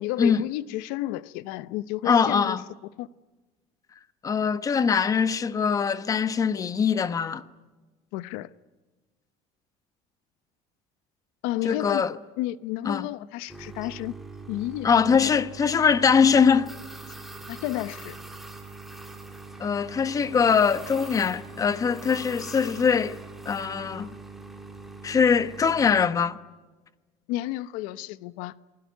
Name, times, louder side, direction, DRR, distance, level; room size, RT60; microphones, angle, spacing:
voice 1, 0.0-2.6 3.0-3.1 8.1-8.5 11.4-14.1 14.5-15.3 17.5-18.2 27.3-28.5, left 16 dB, 80° left, 0.9 m, -32 dB
voice 2, 2.0-2.6 4.2-7.4 11.6-12.1 12.8-13.1 14.8-16.7 19.6-23.2 23.4-24.1 25.0-26.4, left 6 dB, 25° left, 1.0 m, -22 dB
sound 1, 13.5-26.1, right 3 dB, ahead, 3.2 m, -42 dB
29.5 x 20.0 x 9.3 m
cardioid pair, 155°, 14 cm